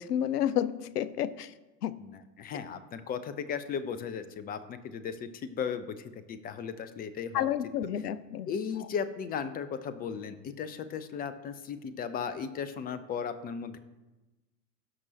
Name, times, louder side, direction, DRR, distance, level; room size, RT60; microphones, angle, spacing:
voice 1, 0.0-1.5 1.8-1.9 7.3-8.5, left 10 dB, 70° left, 16 dB, 0.6 m, -30 dB
voice 2, 2.0-7.5 8.5-13.8, left 7 dB, 20° left, 12 dB, 0.5 m, -36 dB
17.0 x 6.0 x 2.9 m, 1.1 s
figure-of-eight pair, 90°, 49 cm